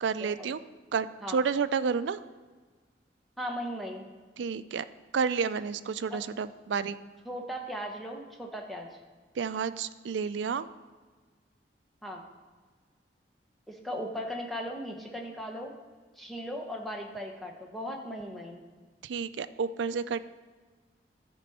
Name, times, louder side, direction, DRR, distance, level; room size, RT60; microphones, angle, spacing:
voice 1, 0.0-0.6 0.9-2.2 4.4-4.9 5.1-7.0 9.3-10.7 19.0-20.2, right 6 dB, 85° right, 14 dB, 0.4 m, -30 dB
voice 2, 3.4-4.1 6.1-6.2 7.3-8.9 12.0-12.2 13.7-15.7 16.2-18.6, equal, ahead, 0 dB, 1.0 m, -37 dB
13.0 x 5.2 x 4.2 m, 1.4 s
head